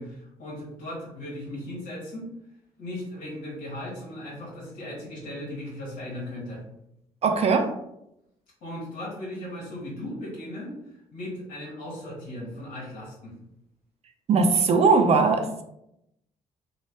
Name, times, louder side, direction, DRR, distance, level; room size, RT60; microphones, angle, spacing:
voice 1, 0.0-2.3 2.8-6.6 8.6-10.8 11.1-13.3, left 1 dB, 70° left, -5 dB, 1.1 m, -37 dB
voice 2, 7.2-7.8 14.3-15.5, right 4 dB, 45° right, 6 dB, 0.5 m, -20 dB
2.5 x 2.2 x 3.3 m, 0.80 s
hypercardioid pair, 55°, 15 cm